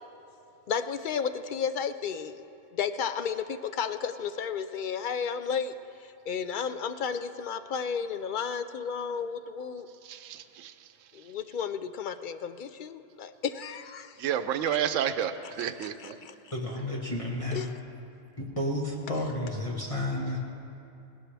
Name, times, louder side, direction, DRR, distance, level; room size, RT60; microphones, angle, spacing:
voice 1, 0.7-2.4 2.7-5.7 6.0-9.9 11.1-14.2 14.7-14.8 15.4-16.3 17.5-17.7, left 6 dB, 60° left, 10 dB, 0.5 m, -33 dB
voice 2, 10.1-10.7 14.2-15.3 15.6-16.2, right 9 dB, 90° right, 10 dB, 1.0 m, -30 dB
voice 3, 16.5-17.7 18.4-20.4, left 1 dB, 25° left, -4 dB, 1.5 m, -31 dB
19.5 x 16.0 x 3.4 m, 2.8 s
omnidirectional pair, 1.3 m